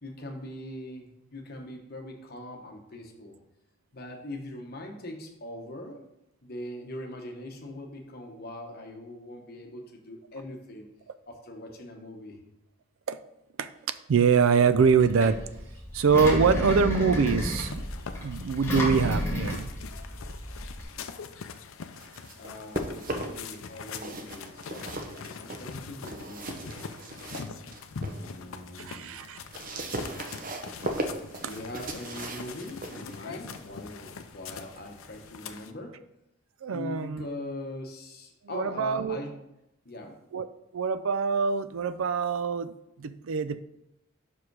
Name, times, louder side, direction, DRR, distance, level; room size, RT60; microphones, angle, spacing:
voice 1, 0.0-3.4 3.9-6.1 6.4-10.9 11.3-12.4 22.4-26.9 27.9-29.2 31.4-36.0 36.7-39.3 39.8-40.2, left 1 dB, 45° left, 3 dB, 1.0 m, -41 dB
voice 2, 14.1-15.4 15.9-17.8 18.2-19.7 28.8-29.4 36.6-37.3 38.5-39.2 40.3-40.5 40.7-43.6, right 5 dB, 70° right, 13 dB, 0.4 m, -24 dB
Engine, 14.7-20.8, left 1 dB, 10° left, 1.3 m, -32 dB
sound 1, 17.7-35.7, left 5 dB, 70° left, 0.5 m, -43 dB
sound 2, 21.7-23.6 23.9-28.2 28.7-35.2, right 1 dB, 40° right, 0.7 m, -38 dB
5.6 x 4.9 x 4.7 m, 0.86 s
head